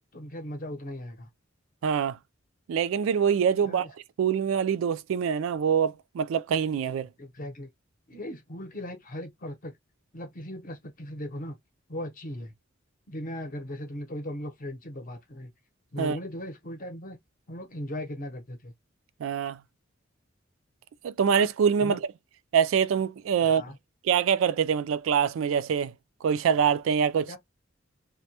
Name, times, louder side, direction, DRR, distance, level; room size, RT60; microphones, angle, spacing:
voice 1, 0.1-1.3 3.6-3.9 7.2-7.7 8.1-9.7 10.1-11.6 11.9-12.5 13.1-15.5 15.9-17.2 17.5-18.7 21.8-22.0 23.4-23.8 27.3-27.4, left 1 dB, 45° left, 0.7 m, -38 dB
voice 2, 1.8-2.2 2.7-3.9 4.2-7.1 16.0-16.2 19.2-19.6 21.0-22.0 22.5-23.6 24.0-25.9 26.2-27.4, right 7 dB, 80° right, 0.3 m, -24 dB
2.2 x 2.1 x 2.8 m
head